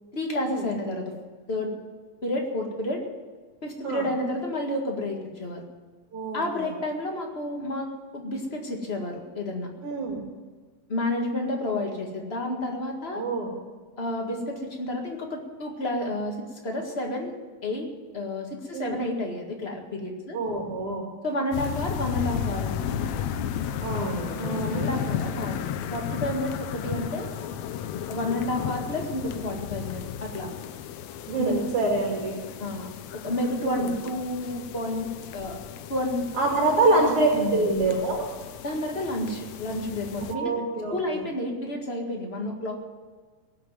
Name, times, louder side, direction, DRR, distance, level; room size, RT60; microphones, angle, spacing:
voice 1, 0.1-1.1 1.5-1.7 2.2-3.1 3.6-5.6 6.3-9.7 10.9-13.2 14.0-17.3 17.6-17.9 18.1-20.4 21.2-23.0 24.4-25.6 25.9-27.3 28.1-30.5 31.3-31.6 32.6-35.6 35.9-37.1 37.3-37.6 37.9-38.1 38.6-40.5 40.9-42.8, left 1 dB, 25° left, 1 dB, 1.5 m, -30 dB
voice 2, 6.1-6.7 9.8-10.2 13.1-13.5 18.7-19.0 20.3-21.0 23.8-25.0 31.3-32.4 33.6-33.9 36.4-38.3 40.3-41.2, right 2 dB, 45° right, -1 dB, 3.0 m, -26 dB
sound 1, 21.5-40.4, left 8 dB, 70° left, 1.8 m, -34 dB
18.0 x 6.7 x 9.2 m, 1.4 s
omnidirectional pair, 3.6 m